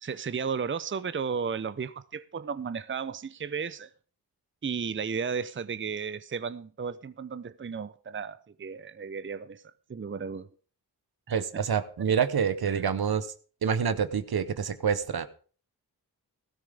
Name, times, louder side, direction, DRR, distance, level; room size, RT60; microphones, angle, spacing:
voice 1, 0.0-3.9 4.6-9.6 9.9-10.5 11.3-11.6 12.7-12.8, right 6 dB, 30° right, 0.6 m, -34 dB
voice 2, 11.3-13.3 13.6-15.3, right 7 dB, 70° right, 1.0 m, -27 dB
15.5 x 13.0 x 3.6 m
cardioid pair, 40°, 39 cm